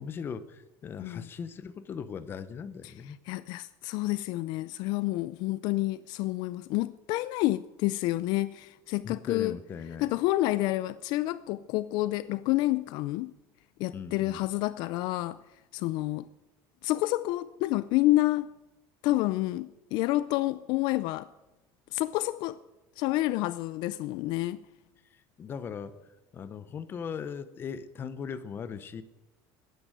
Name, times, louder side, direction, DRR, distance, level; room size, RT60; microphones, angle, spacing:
voice 1, 0.0-3.2 9.0-10.1 13.9-14.4 25.1-26.0 26.3-29.0, left 6 dB, 25° left, 0.8 m, -39 dB
voice 2, 3.3-9.6 10.0-13.3 13.8-15.4 15.7-16.3 16.8-18.5 19.0-21.3 21.9-22.6 23.0-24.6, left 17 dB, 60° left, 0.4 m, -29 dB
14.5 x 10.0 x 9.1 m
cardioid pair, 165°, 9 cm